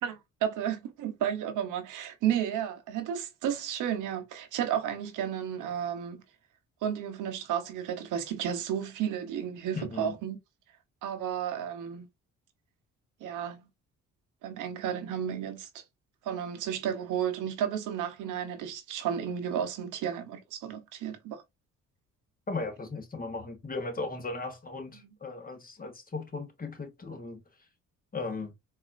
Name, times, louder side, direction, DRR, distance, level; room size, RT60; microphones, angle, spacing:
voice 1, 0.0-6.2 6.8-10.4 11.0-12.1 13.2-13.7 14.4-15.8 16.2-21.4 24.9-25.1, right 9 dB, 90° right, 0.9 m, -32 dB
voice 2, 9.7-10.2 22.5-27.4 28.1-28.5, left 3 dB, 30° left, 1.4 m, -37 dB
4.0 x 2.7 x 2.5 m
cardioid pair, 90°, 30 cm